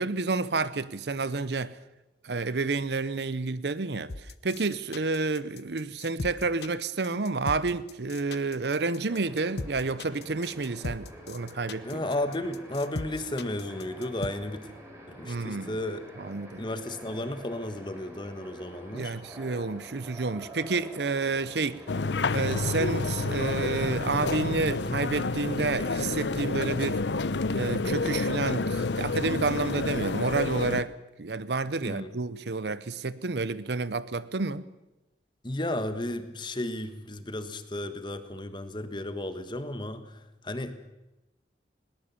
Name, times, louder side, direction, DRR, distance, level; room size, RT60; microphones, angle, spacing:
voice 1, 0.0-1.8 2.2-4.1 4.4-12.1 15.2-15.8 16.2-16.6 18.9-21.8 22.3-27.0 27.5-30.9 31.2-34.6, right 3 dB, 70° right, 0.8 m, -30 dB
sound 1, 4.1-14.3, left 2 dB, 65° left, 1.0 m, -37 dB
sound 2, 9.1-24.0, right 1 dB, 15° right, 4.0 m, -47 dB
voice 2, 11.8-14.7 15.1-16.0 16.6-19.1 24.6-24.8 31.8-32.1 35.4-40.7, left 1 dB, 25° left, 1.5 m, -34 dB
sound 3, 21.9-30.8, left 3 dB, 85° left, 0.8 m, -29 dB
20.5 x 19.0 x 7.1 m
head